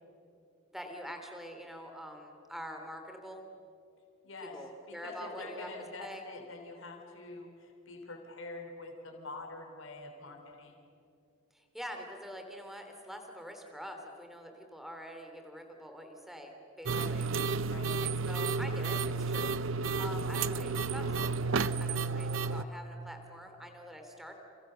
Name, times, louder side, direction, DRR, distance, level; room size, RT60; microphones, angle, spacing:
voice 1, 0.7-3.4 4.5-5.7 6.0-6.2 11.5-17.3 18.0-24.3, equal, ahead, 4 dB, 3.1 m, -45 dB
voice 2, 4.2-4.5 4.9-10.8 16.9-17.1 17.7-17.9, left 3 dB, 70° left, 2 dB, 3.9 m, -46 dB
sound 1, 16.9-22.6, right 4 dB, 70° right, 0.7 m, -32 dB
29.5 x 28.5 x 6.9 m, 2.6 s
head